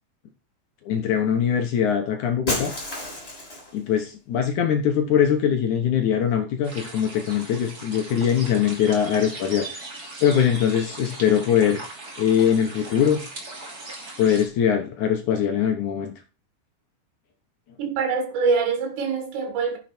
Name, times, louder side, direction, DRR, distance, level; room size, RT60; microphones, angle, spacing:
voice 1, 0.9-2.7 3.7-9.7 10.2-11.8 12.2-13.2 14.2-16.1, left 8 dB, 70° left, 1.9 m, -22 dB
Shatter, 2.5-3.8, left 1 dB, 15° left, 3.1 m, -30 dB
sound 1, 6.6-14.5, right 2 dB, 25° right, 2.7 m, -39 dB
voice 2, 17.8-19.8, right 5 dB, 85° right, 4.4 m, -24 dB
10.0 x 7.4 x 4.4 m
omnidirectional pair, 5.0 m